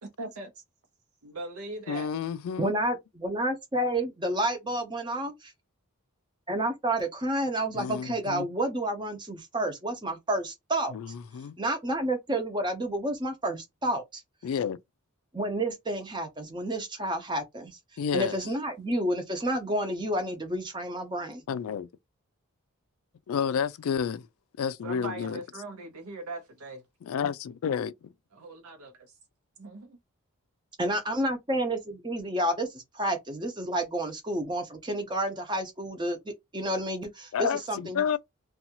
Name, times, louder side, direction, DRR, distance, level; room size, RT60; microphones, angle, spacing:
voice 1, 0.0-0.6 1.2-2.1 24.8-26.8 28.3-29.1 29.6-30.0, right 2 dB, 80° right, 0.7 m, -40 dB
voice 2, 1.9-2.7 7.7-8.5 10.9-11.6 14.4-14.8 18.0-18.4 21.5-21.9 23.3-24.3 24.6-25.4 27.0-28.1 37.3-38.2, left 7 dB, 75° left, 0.3 m, -30 dB
voice 3, 2.6-5.5 6.5-10.9 11.6-14.2 15.3-17.8 18.1-21.4 30.8-38.2, right 1 dB, 20° right, 0.6 m, -30 dB
2.6 x 2.3 x 2.8 m
head